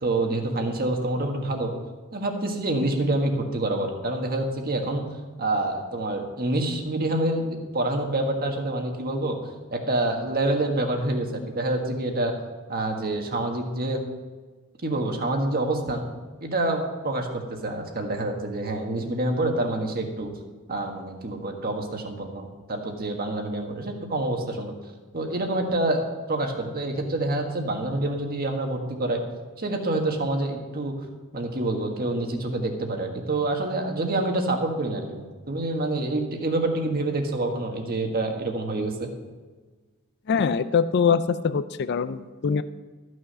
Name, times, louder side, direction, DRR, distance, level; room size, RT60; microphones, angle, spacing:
voice 1, 0.0-1.7 2.1-5.0 5.4-9.4 9.7-12.3 12.7-14.0 14.8-16.0 16.4-20.3 20.7-24.7 25.1-29.2 29.6-30.9 31.3-39.1, right 2 dB, 45° right, 3 dB, 1.6 m, -27 dB
voice 2, 40.3-42.6, left 6 dB, 50° left, 13 dB, 0.4 m, -23 dB
13.5 x 6.4 x 5.6 m, 1.4 s
head